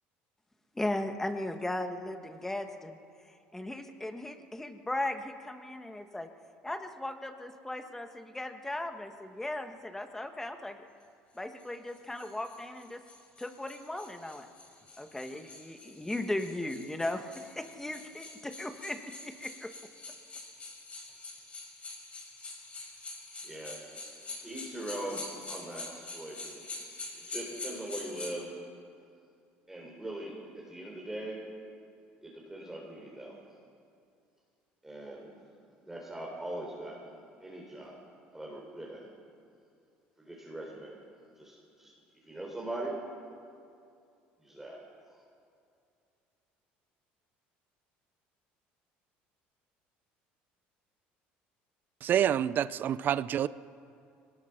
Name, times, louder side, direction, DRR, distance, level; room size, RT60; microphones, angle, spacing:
voice 1, 0.7-3.0 3.2-6.3 6.6-10.9 11.3-13.0 13.4-14.5 15.0-19.7, left 1 dB, 10° left, 7 dB, 1.5 m, -37 dB
sound 1, 11.6-28.3, left 3 dB, 30° left, 5.4 m, -45 dB
voice 2, 23.4-23.8 24.4-26.6 27.2-28.6 29.7-31.4 32.2-33.3 34.8-35.3 35.9-38.0 38.3-39.1 40.2-41.0 41.4-41.9 42.2-43.0 44.4-44.8, right 1 dB, 10° right, -3 dB, 3.8 m, -41 dB
voice 3, 52.0-53.5, right 10 dB, 50° right, 17 dB, 0.5 m, -27 dB
23.0 x 19.0 x 6.1 m, 2.5 s
supercardioid pair, 105°, 4 cm